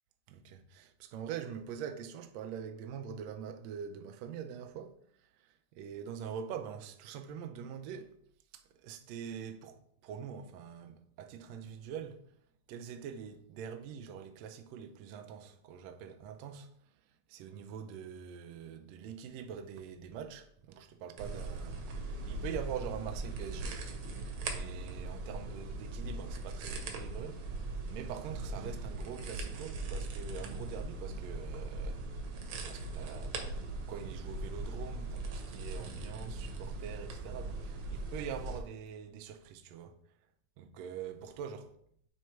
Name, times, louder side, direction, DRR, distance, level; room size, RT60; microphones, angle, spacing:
voice 1, 0.3-8.1 8.5-12.2 12.7-16.7 17.3-23.8 24.2-32.1 32.5-33.5 33.9-40.0 40.6-41.7, right 8 dB, 85° right, 1.5 m, -44 dB
sound 1, 21.2-38.6, right 2 dB, 70° right, 1.8 m, -40 dB
7.7 x 3.2 x 4.4 m
omnidirectional pair, 3.6 m